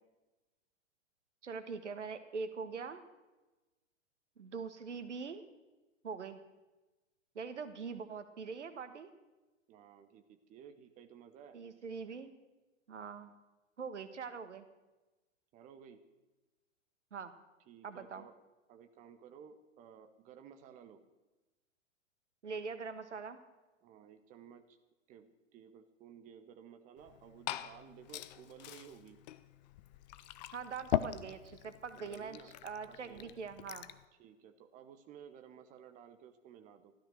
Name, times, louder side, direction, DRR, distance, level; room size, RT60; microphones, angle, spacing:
voice 1, 1.4-3.0 4.4-5.4 6.0-6.4 7.3-9.1 11.5-12.3 12.9-13.3 13.8-14.6 17.1-17.3 17.8-18.3 22.4-23.4 30.5-32.4 32.6-33.9, right 5 dB, 65° right, 10 dB, 1.5 m, -43 dB
voice 2, 9.7-11.6 15.5-16.0 17.7-18.4 18.7-21.0 23.8-24.8 25.1-29.2 31.9-32.5 32.9-33.3 34.2-36.9, right 8 dB, 20° right, 8 dB, 0.9 m, -55 dB
Glass / Fill (with liquid), 27.0-34.0, left 13 dB, 35° left, 0.7 m, -42 dB
15.0 x 13.0 x 6.5 m, 1.1 s
figure-of-eight pair, 105°, 38 cm